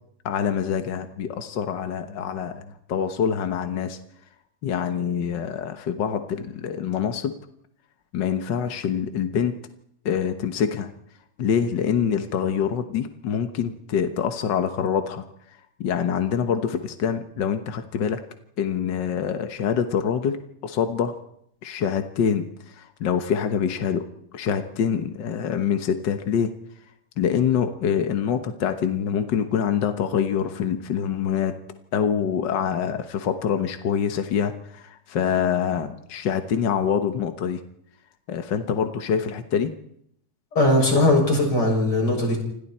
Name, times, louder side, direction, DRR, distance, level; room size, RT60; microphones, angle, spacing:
voice 1, 0.2-4.0 4.6-7.3 8.1-9.5 10.0-10.9 11.4-15.2 15.8-18.2 18.6-20.4 20.6-21.1 21.6-24.1 24.3-26.5 27.2-31.5 31.9-37.6 38.3-39.7, left 7 dB, 60° left, 7 dB, 1.1 m, -25 dB
voice 2, 40.6-42.4, left 1 dB, 30° left, 1 dB, 7.5 m, -19 dB
29.0 x 26.5 x 4.4 m, 0.74 s
omnidirectional pair, 3.6 m